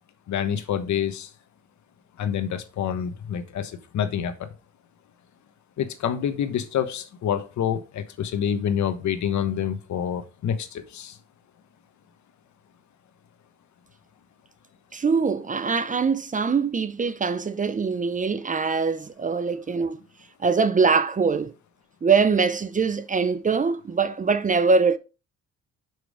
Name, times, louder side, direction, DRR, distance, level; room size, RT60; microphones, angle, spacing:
voice 1, 0.3-1.3 2.2-4.5 5.8-11.2, left 9 dB, 70° left, 1.2 m, -27 dB
voice 2, 14.9-20.0 20.4-21.5 22.0-25.0, right 5 dB, 25° right, 0.6 m, -23 dB
6.2 x 5.1 x 4.8 m
cardioid pair, 90°, 30 cm